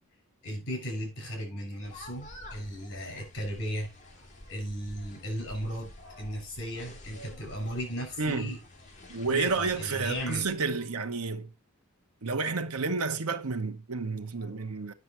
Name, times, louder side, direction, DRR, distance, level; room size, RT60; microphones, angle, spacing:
voice 1, 0.4-8.6 9.3-10.4 14.3-14.8, equal, 55° left, 6.6 m, -36 dB
sound 1, 1.8-10.6, left 1 dB, 35° left, 2.3 m, -49 dB
voice 2, 8.2-8.6 9.1-11.5 12.2-14.9, right 4 dB, 90° right, 1.0 m, -30 dB
9.6 x 6.4 x 4.4 m
head